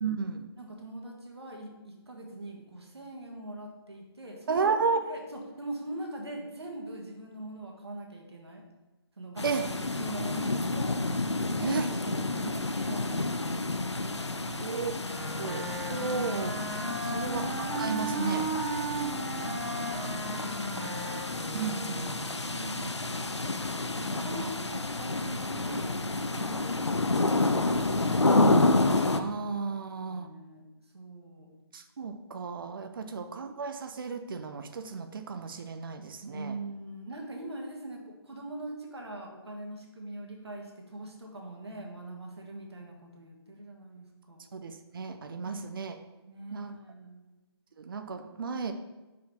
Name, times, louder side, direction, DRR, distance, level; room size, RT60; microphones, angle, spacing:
voice 1, 0.0-0.4 4.5-5.0 9.4-9.7 11.6-11.9 14.6-14.9 15.4-16.5 17.1-18.5 21.5-21.9 24.4-24.5 29.2-30.3 31.7-36.6 44.5-46.0 46.5-46.8 47.8-48.7, right 5 dB, 55° right, 8 dB, 0.5 m, -33 dB
voice 2, 0.6-4.7 5.1-8.6 9.2-9.5 10.0-11.0 11.3-13.6 14.4-14.9 15.1-15.4 17.0-17.4 19.1-21.6 21.9-23.6 24.0-25.9 26.3-26.9 27.3-28.6 30.1-30.6 30.9-31.5 33.0-33.2 36.2-44.5 45.4-45.8 46.3-47.3, right 1 dB, 70° right, 1 dB, 1.6 m, -42 dB
sound 1, 9.4-29.2, left 2 dB, 90° left, 0.5 m, -30 dB
Wind instrument woodwind instrument, 15.0-22.3, right 3 dB, 10° right, 1.1 m, -36 dB
6.2 x 4.6 x 3.5 m, 1.1 s
figure-of-eight pair, 140°, 14 cm